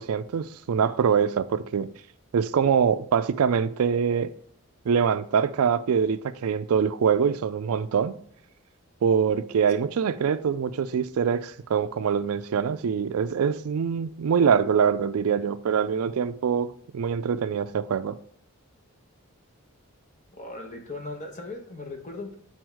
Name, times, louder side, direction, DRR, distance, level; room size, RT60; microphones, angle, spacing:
voice 1, 0.0-1.9 2.3-4.3 4.9-8.2 9.0-18.2, right 7 dB, 80° right, 0.4 m, -24 dB
voice 2, 20.3-22.3, left 2 dB, 35° left, 1.1 m, -38 dB
6.2 x 4.2 x 4.7 m
head